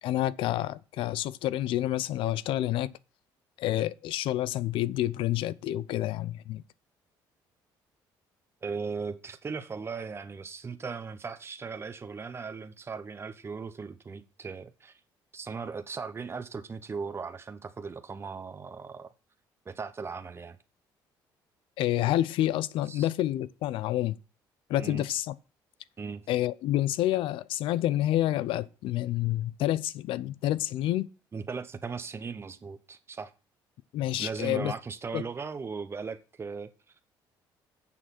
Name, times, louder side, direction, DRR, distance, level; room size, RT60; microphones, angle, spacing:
voice 1, 0.0-2.9 3.6-6.6 21.8-24.2 24.7-25.3 26.3-31.1 33.9-34.7 35.1-35.2, left 14 dB, 75° left, 0.5 m, -28 dB
voice 2, 8.6-14.9 15.3-19.1 19.7-20.6 22.9-23.1 24.8-25.0 26.0-26.3 31.3-33.3 34.2-36.7, right 5 dB, 30° right, 0.9 m, -38 dB
7.4 x 6.3 x 5.9 m
cardioid pair, 90°, 9 cm